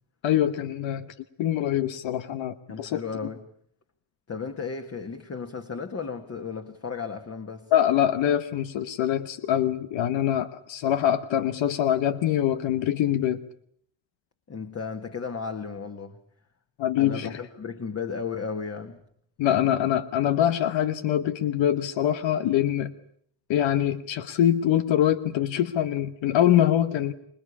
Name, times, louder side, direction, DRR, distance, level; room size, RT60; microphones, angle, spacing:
voice 1, 0.2-1.1 1.4-3.0 7.7-13.4 16.8-17.4 19.4-22.9 23.5-27.1, left 11 dB, 85° left, 11 dB, 1.2 m, -24 dB
voice 2, 2.7-3.4 4.3-7.7 14.5-16.2 17.0-19.0, left 5 dB, 35° left, 6 dB, 1.8 m, -34 dB
26.0 x 20.0 x 8.4 m, 0.65 s
cardioid pair, 130°, 44 cm